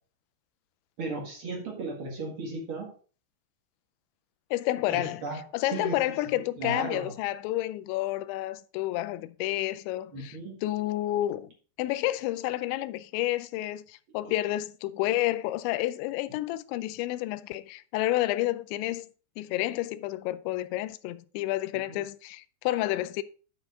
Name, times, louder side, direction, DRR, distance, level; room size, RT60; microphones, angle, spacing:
voice 1, 1.0-2.9 4.9-6.1 6.6-7.1 10.1-10.6 14.2-14.3 21.9-22.0, right 3 dB, 70° right, 1.2 m, -36 dB
voice 2, 4.5-5.2 5.5-11.5 11.8-19.1 19.4-23.2, left 15 dB, 85° left, 2.7 m, -30 dB
10.5 x 4.7 x 4.7 m
omnidirectional pair, 5.4 m